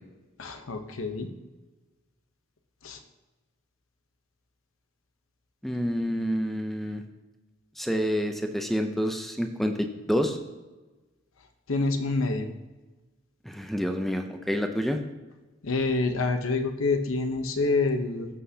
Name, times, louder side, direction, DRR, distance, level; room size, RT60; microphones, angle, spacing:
voice 1, 0.4-1.3 2.8-3.0 11.7-12.5 15.6-18.3, left 3 dB, 80° left, 7 dB, 0.9 m, -27 dB
voice 2, 5.6-7.0 7.8-10.4 13.4-15.0, equal, ahead, 5 dB, 0.5 m, -28 dB
14.0 x 5.8 x 2.8 m, 1.2 s
head